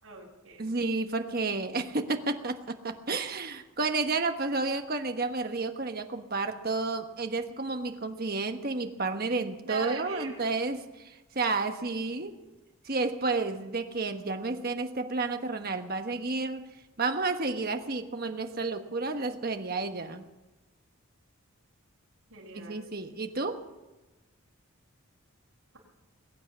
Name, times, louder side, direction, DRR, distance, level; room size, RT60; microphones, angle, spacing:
voice 1, 0.0-0.6 9.6-10.4 22.3-22.8, right 4 dB, 85° right, -7 dB, 4.5 m, -40 dB
voice 2, 0.6-12.4 12.8-16.7 17.0-20.3 22.5-23.6, right 3 dB, 45° right, 6 dB, 1.2 m, -31 dB
21.5 x 9.1 x 7.2 m, 1.1 s
head